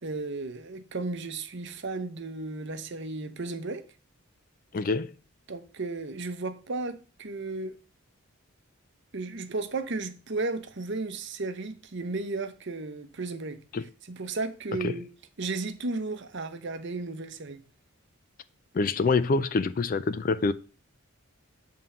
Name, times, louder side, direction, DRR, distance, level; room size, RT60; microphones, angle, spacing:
voice 1, 0.0-3.8 5.5-7.8 9.1-13.6 14.1-15.1 15.4-17.6, right 3 dB, 50° right, 0.7 m, -34 dB
voice 2, 4.7-5.1 13.7-13.8 14.8-14.9 18.7-20.5, left 4 dB, 40° left, 0.3 m, -25 dB
7.7 x 3.7 x 5.5 m
head